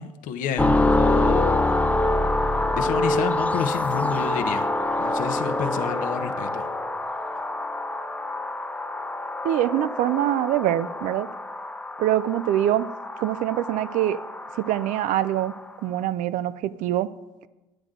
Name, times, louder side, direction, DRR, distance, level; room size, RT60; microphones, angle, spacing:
voice 1, 0.0-1.7 2.7-4.7 5.0-6.7, left 7 dB, 75° left, 8 dB, 0.8 m, -29 dB
sound 1, 0.6-15.7, left 2 dB, 10° left, 0.5 m, -26 dB
voice 2, 9.4-11.3 12.0-12.9 13.2-14.2 14.5-15.5 15.8-17.1, right 13 dB, 75° right, 16 dB, 0.4 m, -24 dB
10.0 x 7.8 x 3.7 m, 1.1 s
cardioid pair, 100°, 14 cm